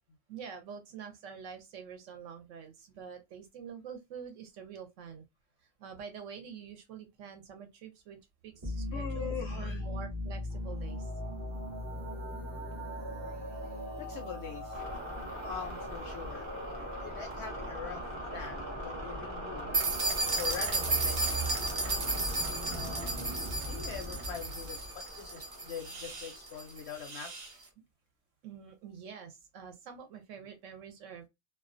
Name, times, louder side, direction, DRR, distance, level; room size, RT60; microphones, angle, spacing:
voice 1, 0.3-5.2 5.6-11.1 28.4-31.3, right 7 dB, 70° right, 0.8 m, -46 dB
sound 1, 8.6-27.1, equal, 30° right, 0.5 m, -39 dB
voice 2, 8.9-9.8 13.0-13.4 14.0-14.8 15.4-18.0 18.3-19.8 20.3-21.6 22.7-24.9 25.1-27.3, left 7 dB, 65° left, 0.7 m, -43 dB
keys ringing, 19.7-27.5, right 3 dB, 85° right, 0.3 m, -34 dB
2.3 x 2.2 x 2.4 m
omnidirectional pair, 1.5 m